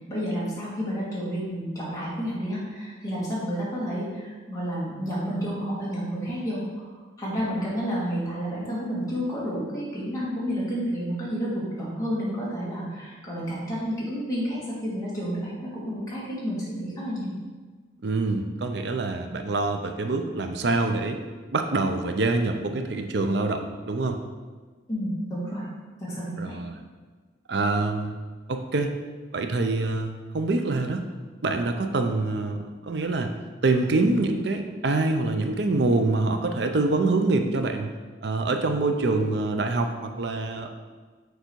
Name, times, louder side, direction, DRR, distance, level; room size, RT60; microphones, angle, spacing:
voice 1, 0.1-17.3 24.9-25.7 26.0-26.6, equal, 15° left, -8 dB, 1.9 m, -30 dB
voice 2, 18.0-21.2 21.5-24.2 26.4-26.8 27.5-28.2 28.5-28.9 29.3-31.0 31.4-33.3 33.6-37.9 38.2-40.7, right 3 dB, 60° right, 6 dB, 0.5 m, -25 dB
6.8 x 3.9 x 4.5 m, 1.4 s
head